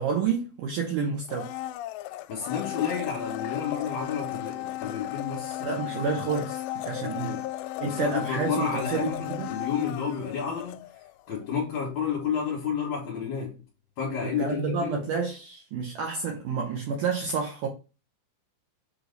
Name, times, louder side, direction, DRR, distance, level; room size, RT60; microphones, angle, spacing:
voice 1, 0.0-1.5 5.6-7.4 7.8-9.5 14.2-17.7, right 5 dB, 80° right, 1.9 m, -29 dB
Domestic sounds home sounds, 1.3-11.2 11.5-11.6, left 14 dB, 85° left, 2.7 m, -35 dB
voice 2, 2.3-5.8 7.0-7.4 7.8-10.8 11.3-13.6 14.0-15.0, left 7 dB, 55° left, 2.6 m, -31 dB
7.6 x 3.3 x 3.9 m
omnidirectional pair, 4.9 m